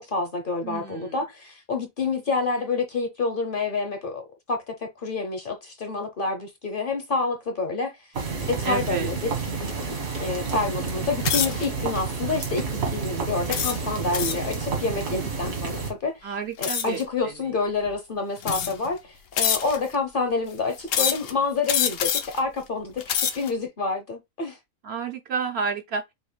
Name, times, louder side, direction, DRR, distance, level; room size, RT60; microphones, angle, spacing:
voice 1, 0.0-4.2 4.5-8.0 8.4-9.3 10.2-12.7 12.9-16.3 16.6-24.6, left 4 dB, 45° left, 0.9 m, -28 dB
voice 2, 0.6-1.2 8.6-9.1 16.2-17.5 24.8-26.0, right 5 dB, 60° right, 0.8 m, -31 dB
sound 1, 8.1-15.9, right 5 dB, 85° right, 2.1 m, -30 dB
sound 2, 11.2-11.7 12.3-12.6 13.5-14.5 16.6-17.0 17.9-18.0 18.4-18.9 19.4-19.9 20.9-21.3 21.7-22.4 22.9-23.5, left 8 dB, 75° left, 1.0 m, -26 dB
6.2 x 3.4 x 2.3 m
omnidirectional pair, 1.4 m